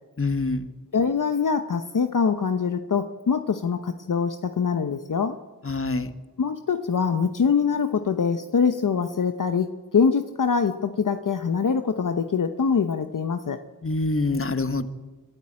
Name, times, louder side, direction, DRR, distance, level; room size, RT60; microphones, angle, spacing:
voice 1, 0.2-0.7 5.6-6.1 13.8-14.9, left 3 dB, 40° left, 11 dB, 1.5 m, -25 dB
voice 2, 0.9-5.4 6.4-13.6, left 6 dB, 65° left, 9 dB, 1.0 m, -24 dB
24.5 x 12.5 x 8.8 m, 1.3 s
cardioid pair, 50°, 34 cm